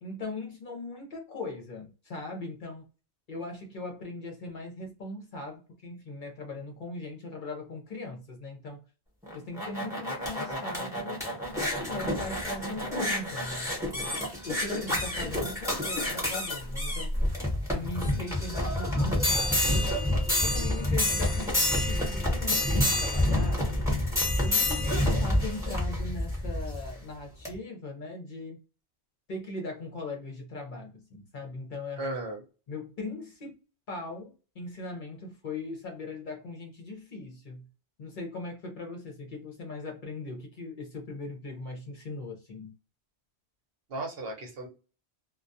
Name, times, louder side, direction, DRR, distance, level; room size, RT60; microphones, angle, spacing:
voice 1, 0.0-2.9 3.3-8.9 9.3-11.3 11.6-14.2 14.4-17.1 17.7-19.9 20.4-23.9 24.4-28.6 29.3-32.1 32.7-33.6 33.9-37.7 38.0-42.8, left 2 dB, 50° left, 0.7 m, -39 dB
sound 1, 9.2-26.9 27.5-27.6, left 1 dB, 5° right, 0.9 m, -28 dB
voice 2, 32.0-32.4 43.9-44.7, right 2 dB, 60° right, 0.9 m, -35 dB
2.2 x 2.2 x 2.6 m
omnidirectional pair, 1.1 m